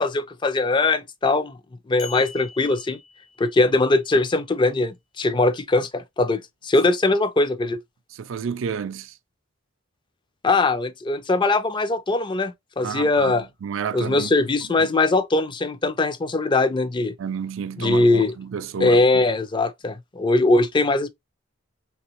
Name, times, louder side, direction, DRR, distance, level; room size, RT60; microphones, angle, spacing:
voice 1, 0.0-1.6 1.9-3.0 3.4-7.8 10.4-13.5 13.9-17.1 17.8-18.3 18.8-21.1, left 2 dB, 25° left, 0.4 m, -21 dB
sound 1, 2.0-3.8, left 5 dB, 85° left, 1.2 m, -43 dB
voice 2, 8.1-9.1 12.8-14.3 14.8-14.9 17.2-19.2, right 6 dB, 75° right, 0.4 m, -31 dB
3.1 x 2.9 x 2.9 m
head